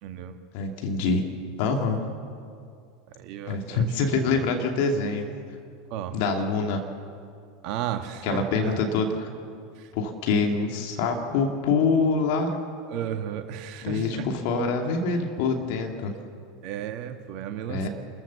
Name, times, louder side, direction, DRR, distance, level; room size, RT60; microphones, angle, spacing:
voice 1, 0.0-0.4 3.2-4.5 5.9-6.2 7.6-8.8 9.8-9.9 10.3-10.6 12.9-14.3 16.6-17.9, right 10 dB, 50° right, 6 dB, 1.8 m, -34 dB
voice 2, 0.5-1.2 1.6-2.0 3.4-5.3 6.1-6.8 8.2-9.3 9.9-12.6 13.8-16.1 17.7-17.9, left 4 dB, 55° left, 3 dB, 2.6 m, -25 dB
29.0 x 14.5 x 7.0 m, 2.3 s
figure-of-eight pair, 80°, 0 cm